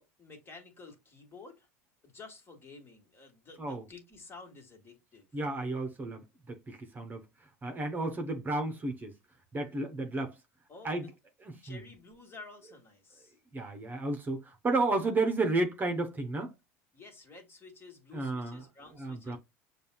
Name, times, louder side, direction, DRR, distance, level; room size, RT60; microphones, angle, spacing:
voice 1, 0.0-1.7 2.0-5.3 10.7-11.1 11.6-13.3 16.9-19.4, left 4 dB, 30° left, 1.8 m, -51 dB
voice 2, 5.3-7.2 7.6-9.1 9.5-10.4 10.8-11.1 11.4-11.8 13.5-16.5 18.1-18.6 18.9-19.4, right 2 dB, 25° right, 0.9 m, -32 dB
6.7 x 2.4 x 2.3 m
hypercardioid pair, 80°, 8 cm